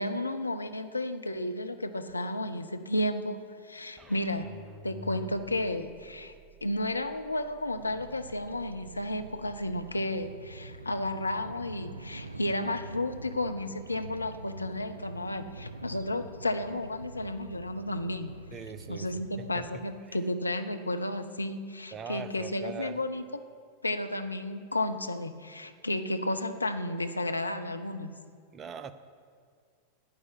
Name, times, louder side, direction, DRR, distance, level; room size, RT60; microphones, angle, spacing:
voice 1, 0.0-3.4 3.7-4.5 4.8-6.3 6.6-18.3 18.9-23.2 23.8-28.2, left 1 dB, 80° left, 8 dB, 0.6 m, -32 dB
sound 1, 4.0-10.0, right 3 dB, 5° right, 1.1 m, -51 dB
Bird vocalization bird call bird song, 7.7-19.7, right 2 dB, 85° right, 0.4 m, -45 dB
voice 2, 18.5-20.2 21.9-23.0 28.5-28.9, right 6 dB, 25° right, 11 dB, 0.7 m, -42 dB
9.7 x 9.5 x 7.3 m, 2.1 s
figure-of-eight pair, 90°, 0 cm